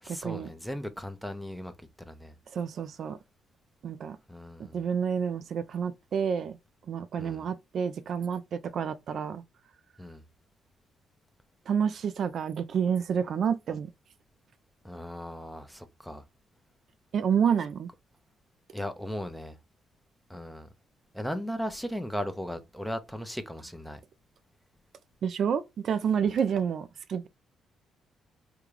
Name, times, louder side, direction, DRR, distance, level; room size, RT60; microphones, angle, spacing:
voice 1, 0.0-2.3 4.3-4.8 7.2-7.4 10.0-10.2 14.8-16.2 18.7-19.6 20.3-20.7 21.1-24.0, equal, ahead, 0.6 m, -37 dB
voice 2, 2.5-3.2 3.8-4.2 4.7-6.5 6.9-9.4 11.7-13.9 17.1-17.9 25.2-27.3, right 7 dB, 60° right, 0.3 m, -29 dB
3.7 x 2.2 x 3.1 m
cardioid pair, 90°, 0 cm